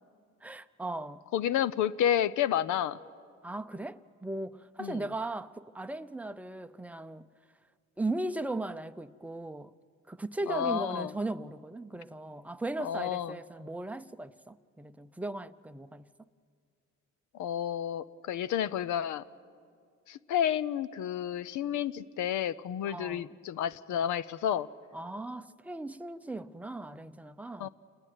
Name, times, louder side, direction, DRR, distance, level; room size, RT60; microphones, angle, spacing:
voice 1, 0.4-1.2 3.4-7.3 8.0-9.7 10.1-16.1 22.9-23.3 24.9-27.7, right 2 dB, 5° right, 0.6 m, -37 dB
voice 2, 1.3-3.0 4.8-5.0 10.5-11.1 12.8-13.4 17.3-19.2 20.1-24.7 27.6-27.7, left 10 dB, 80° left, 0.8 m, -30 dB
28.0 x 20.0 x 9.3 m
cardioid pair, 115°, 29 cm